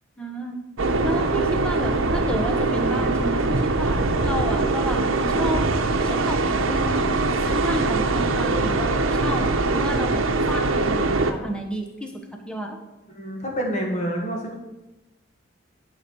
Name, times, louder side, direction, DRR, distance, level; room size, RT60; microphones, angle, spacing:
voice 1, 0.2-0.6 1.0-5.6 6.0-7.1 7.4-12.1 12.4-12.8, equal, 5° left, 2 dB, 1.0 m, -31 dB
sound 1, 0.8-11.3, right 3 dB, 85° right, 0.9 m, -22 dB
voice 2, 13.1-14.5, equal, 35° left, 0 dB, 1.8 m, -27 dB
11.0 x 5.9 x 4.7 m, 1.0 s
head